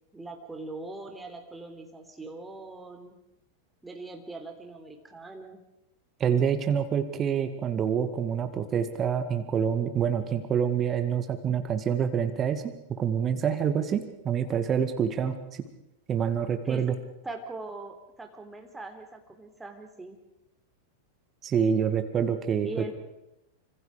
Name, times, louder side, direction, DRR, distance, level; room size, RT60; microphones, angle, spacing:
voice 1, 0.1-3.2 3.8-5.6 16.6-16.9 17.2-20.2 22.6-22.9, right 2 dB, 10° right, 4 dB, 3.7 m, -41 dB
voice 2, 6.2-15.6 16.1-16.9 21.4-22.9, right 7 dB, 25° right, 9 dB, 2.1 m, -27 dB
26.5 x 26.0 x 5.1 m, 0.89 s
figure-of-eight pair, 90°, 0 cm